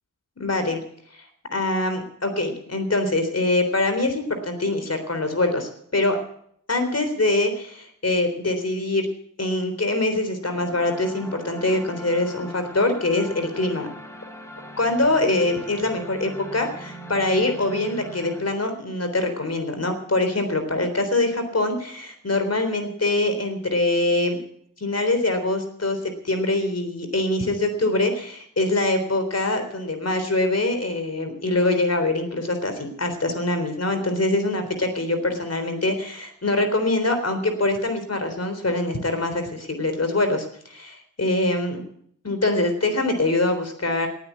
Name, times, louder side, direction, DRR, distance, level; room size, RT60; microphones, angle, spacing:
voice 1, 0.4-0.8 1.5-6.2 6.7-9.1 9.4-13.9 14.8-24.4 24.8-41.8 42.2-44.1, left 2 dB, 50° left, 7 dB, 3.8 m, -24 dB
sound 1, 10.5-18.4, equal, 10° left, 4.0 m, -40 dB
18.5 x 9.0 x 8.4 m, 0.66 s
cardioid pair, 45°, 32 cm